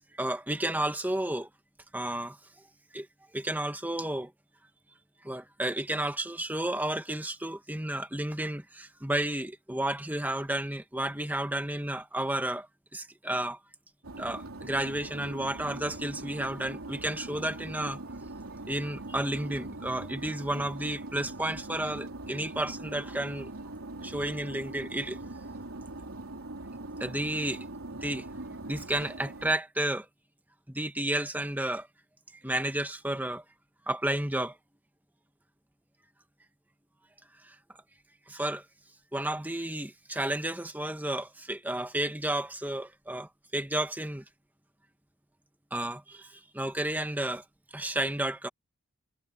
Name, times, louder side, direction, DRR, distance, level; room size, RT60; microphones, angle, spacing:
voice 1, 0.2-1.5 1.9-2.4 2.9-3.1 3.3-4.3 5.2-12.7 12.9-13.6 14.2-18.0 18.7-23.5 24.0-25.2 27.0-27.7 27.9-28.3 28.7-30.1 30.7-31.9 32.4-33.4 33.9-34.6 37.4-37.6 38.3-38.6 39.1-44.2 45.7-47.4 47.7-48.5, right 1 dB, 10° right, 1.7 m, -32 dB
sound 1, 14.0-29.5, right 2 dB, 75° right, 3.0 m, -42 dB
head